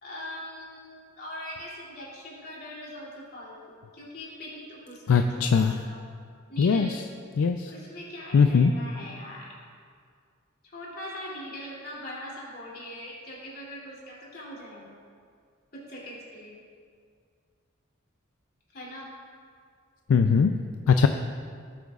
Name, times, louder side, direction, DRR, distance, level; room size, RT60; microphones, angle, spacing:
voice 1, 0.0-6.0 6.5-7.0 7.7-9.5 10.7-14.9 15.7-16.6 18.7-19.1, left 1 dB, 50° left, -5 dB, 2.8 m, -41 dB
voice 2, 5.1-5.7 6.6-7.0 7.4-7.7 8.3-8.7 20.1-20.5 20.9-21.1, left 5 dB, 75° left, 7 dB, 0.4 m, -20 dB
17.5 x 8.0 x 2.4 m, 2.1 s
head